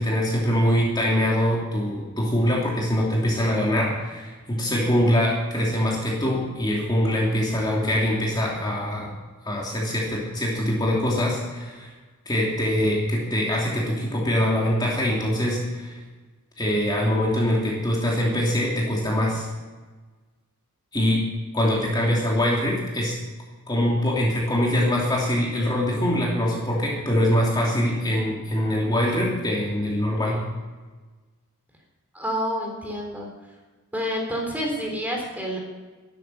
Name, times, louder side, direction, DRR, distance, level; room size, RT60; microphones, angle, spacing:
voice 1, 0.0-9.1 9.4-11.9 12.2-16.0 16.6-19.5 20.9-21.2 21.5-23.2 23.7-30.4, equal, 20° left, -4 dB, 2.9 m, -23 dB
voice 2, 32.1-33.3 33.9-35.6, equal, 10° right, 0 dB, 3.5 m, -28 dB
12.5 x 12.0 x 6.9 m, 1.3 s
head